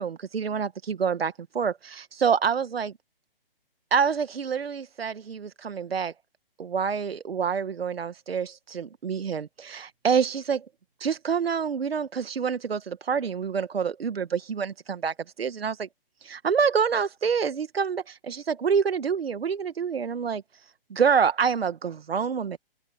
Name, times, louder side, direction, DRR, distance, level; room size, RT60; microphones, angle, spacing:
voice 1, 0.0-2.9 3.9-6.1 6.6-10.6 11.0-15.9 16.2-22.6, right 6 dB, 90° right, 1.4 m, -27 dB
hypercardioid pair, 155°, 29 cm